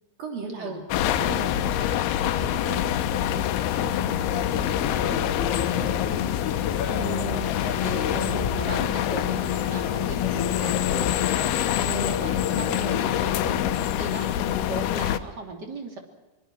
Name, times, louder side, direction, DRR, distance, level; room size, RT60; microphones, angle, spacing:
voice 1, 0.2-0.9 1.2-1.9 2.2-6.4 12.5-12.9, right 5 dB, 65° right, 1 dB, 4.8 m, -40 dB
sound 1, 0.9-15.2, left 12 dB, 85° left, 2.9 m, -26 dB
sound 2, 4.3-13.7, left 7 dB, 55° left, 2.1 m, -32 dB
voice 2, 6.8-11.2 11.8-16.0, right 3 dB, 30° right, 3 dB, 3.2 m, -36 dB
25.0 x 23.5 x 6.3 m, 1.1 s
omnidirectional pair, 4.4 m